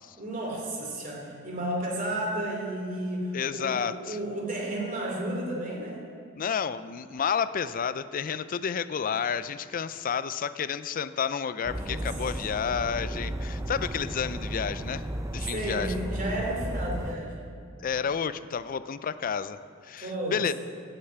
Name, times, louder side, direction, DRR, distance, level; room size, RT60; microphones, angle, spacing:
voice 1, 0.2-6.0 11.9-12.0 15.5-17.3 20.0-20.5, right 1 dB, 45° right, -1 dB, 3.0 m, -32 dB
voice 2, 3.3-4.2 6.4-15.1 15.3-15.9 17.8-20.5, left 7 dB, 45° left, 14 dB, 0.4 m, -31 dB
sound 1, 11.6-17.2, right 1 dB, 15° right, 0.5 m, -34 dB
9.9 x 9.0 x 8.0 m, 2.4 s
head